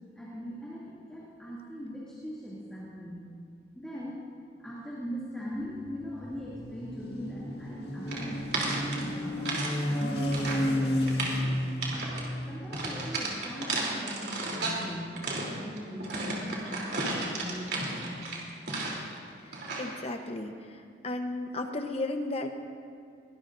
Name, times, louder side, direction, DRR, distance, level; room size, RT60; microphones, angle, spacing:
voice 1, 0.2-3.3 3.7-4.3 4.6-11.7 12.5-15.3 15.6-18.3, equal, 5° left, -9 dB, 2.5 m, -40 dB
sound 1, 5.5-13.2, left 1 dB, 65° left, 1.9 m, -33 dB
sound 2, 8.1-9.7 10.0-10.7 11.0-11.4 11.8-12.3 12.7-14.8 15.2-19.1 19.5-20.0, right 2 dB, 65° right, 3.2 m, -33 dB
voice 2, 19.8-20.5 21.0-22.5, left 2 dB, 35° left, 5 dB, 0.9 m, -33 dB
22.5 x 18.5 x 2.6 m, 2.3 s
head